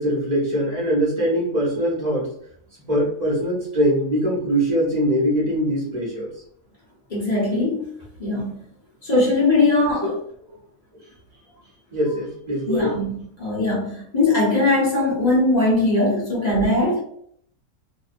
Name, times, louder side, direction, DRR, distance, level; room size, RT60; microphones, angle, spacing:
voice 1, 0.0-2.3 2.9-6.3 10.0-10.1 10.4-10.5 11.9-13.0, equal, 35° right, -9 dB, 0.9 m, -22 dB
voice 2, 7.1-7.9 8.2-8.6 9.0-10.2 12.7-17.0, left 2 dB, 35° left, -6 dB, 0.9 m, -20 dB
2.8 x 2.0 x 2.5 m, 0.66 s
omnidirectional pair, 1.6 m